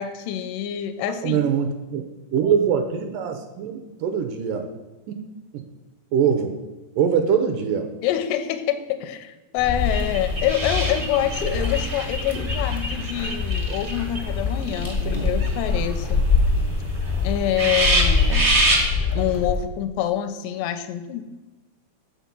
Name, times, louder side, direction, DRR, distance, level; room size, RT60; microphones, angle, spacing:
voice 1, 0.0-1.4 8.0-16.2 17.2-18.5 19.2-21.2, left 11 dB, 85° left, 9 dB, 2.2 m, -26 dB
voice 2, 1.2-2.0 2.3-4.7 5.1-5.2 5.5-5.6 6.1-6.6 7.0-7.9, right 7 dB, 80° right, 6 dB, 2.1 m, -23 dB
sound 1, 9.6-19.6, left 4 dB, 55° left, 0.5 m, -25 dB
sound 2, 9.8-14.2 14.6-15.9 16.2-16.3 16.6-16.7 17.1-17.2 17.4-18.9, right 2 dB, 60° right, 0.6 m, -25 dB
7.5 x 5.8 x 5.3 m, 1.1 s
omnidirectional pair, 4.0 m